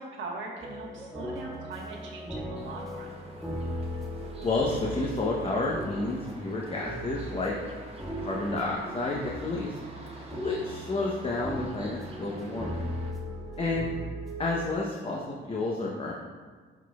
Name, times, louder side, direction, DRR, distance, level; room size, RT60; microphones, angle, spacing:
voice 1, 0.0-3.1, right 3 dB, 75° right, -1 dB, 1.4 m, -40 dB
sound 1, 0.6-14.7, equal, ahead, 1.8 m, -38 dB
sound 2, 2.5-13.1, right 1 dB, 30° right, 1.1 m, -49 dB
voice 2, 4.4-7.5 8.2-9.8 10.4-12.8 13.6-13.9 14.4-15.2 15.5-16.1, left 2 dB, 30° left, -3 dB, 0.8 m, -30 dB
11.0 x 4.2 x 2.3 m, 1.5 s
cardioid pair, 90°, 20 cm